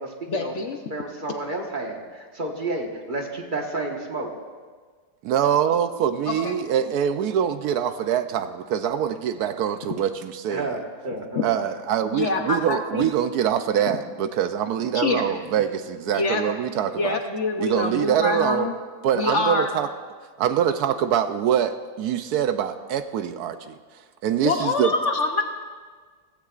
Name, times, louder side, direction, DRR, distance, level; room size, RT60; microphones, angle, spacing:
voice 1, 0.3-0.8 6.3-6.5 11.3-11.5 12.1-13.1 14.9-15.4 16.1-16.4 16.7-18.7 19.1-19.7 24.4-25.4, left 3 dB, 55° left, 4 dB, 1.0 m, -25 dB
voice 2, 0.9-4.3 10.5-10.8 11.0-11.4, right 2 dB, 30° right, 1 dB, 1.5 m, -30 dB
voice 3, 5.2-10.7 11.4-17.2 17.6-18.7 19.0-19.9 20.4-23.8 24.2-24.9, right 9 dB, 75° right, 10 dB, 1.1 m, -24 dB
16.5 x 15.5 x 2.5 m, 1.5 s
omnidirectional pair, 1.7 m